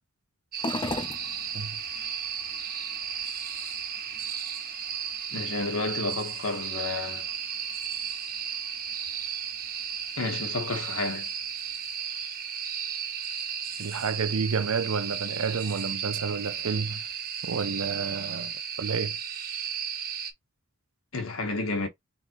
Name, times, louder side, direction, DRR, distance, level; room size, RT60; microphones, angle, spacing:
sound 1, 0.5-20.3, right 8 dB, 45° right, 1.0 m, -34 dB
sound 2, 0.6-19.2, left 2 dB, 20° left, 0.8 m, -45 dB
voice 1, 5.3-7.3 10.2-11.3 21.1-21.9, left 3 dB, 90° left, 1.6 m, -31 dB
voice 2, 13.8-17.0 17.4-18.5 18.8-19.2, right 5 dB, 90° right, 0.6 m, -30 dB
3.9 x 3.7 x 3.1 m
head